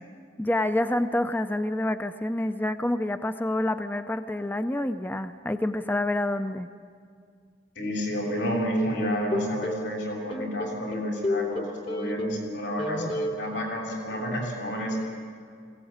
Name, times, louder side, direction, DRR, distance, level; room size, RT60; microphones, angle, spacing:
voice 1, 0.4-6.7, left 1 dB, 10° left, 9 dB, 0.5 m, -27 dB
voice 2, 7.7-15.0, equal, 90° left, -2 dB, 6.7 m, -30 dB
sound 1, 9.0-9.9 10.3-12.5 12.8-13.4, left 1 dB, 25° left, 1.1 m, -31 dB
21.0 x 17.0 x 8.7 m, 2.1 s
head